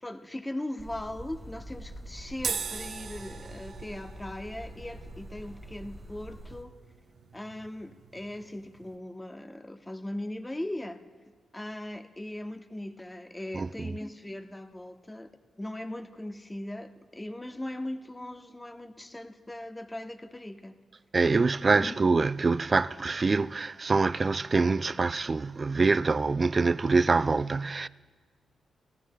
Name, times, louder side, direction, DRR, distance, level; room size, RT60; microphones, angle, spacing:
voice 1, 0.0-6.8 7.3-11.0 11.5-15.3 15.6-20.7 21.7-22.0, left 1 dB, 15° left, 0.9 m, -39 dB
sound 1, 0.8-6.6, equal, 20° right, 1.1 m, -45 dB
sound 2, 2.4-9.0, right 5 dB, 65° right, 0.8 m, -41 dB
voice 2, 13.5-13.9 21.1-27.9, right 4 dB, 40° right, 0.3 m, -25 dB
20.5 x 15.5 x 2.3 m
cardioid pair, 70°, 0 cm